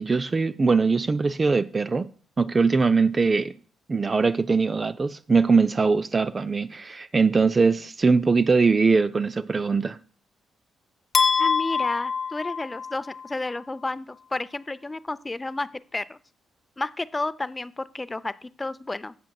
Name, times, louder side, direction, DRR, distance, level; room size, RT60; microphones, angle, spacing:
voice 1, 0.0-2.1 2.4-3.5 3.9-10.0, right 4 dB, 35° right, 0.4 m, -21 dB
sound 1, 11.1-13.3, left 5 dB, 40° left, 0.9 m, -24 dB
voice 2, 11.4-16.2 16.8-19.1, left 2 dB, 25° left, 0.5 m, -31 dB
15.0 x 7.4 x 2.3 m
hypercardioid pair, 40°, 0 cm